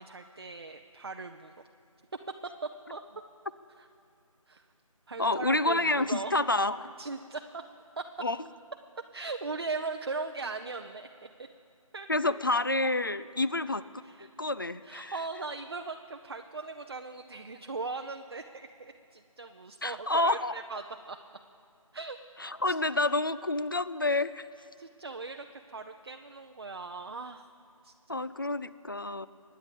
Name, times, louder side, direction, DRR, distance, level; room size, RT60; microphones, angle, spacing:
voice 1, 0.0-1.5 2.4-2.5 2.9-3.0 3.8-3.9 4.5-4.6 5.1-6.3 7.0-7.6 8.0-8.1 9.1-11.1 11.4-11.5 11.9-12.3 14.0-14.3 14.8-21.2 21.9-22.2 22.7-22.8 24.8-27.5 27.8-28.2, right 3 dB, 45° right, 5 dB, 0.6 m, -39 dB
voice 2, 5.2-6.9 8.2-8.4 12.1-13.8 14.4-15.2 19.8-20.6 22.4-24.5 28.1-29.3, left 2 dB, 40° left, 15 dB, 0.4 m, -28 dB
24.5 x 10.0 x 5.2 m, 2.6 s
figure-of-eight pair, 160°, 18 cm